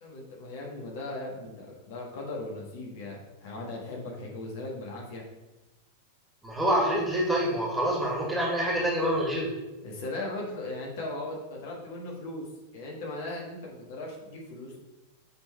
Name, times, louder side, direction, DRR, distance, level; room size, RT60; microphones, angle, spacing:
voice 1, 0.0-5.2 9.8-12.5 12.7-14.8, left 2 dB, 55° left, -2 dB, 1.6 m, -38 dB
voice 2, 6.4-9.5, right 1 dB, 5° right, -4 dB, 2.1 m, -26 dB
7.6 x 3.9 x 4.3 m, 1.1 s
figure-of-eight pair, 90°, 0 cm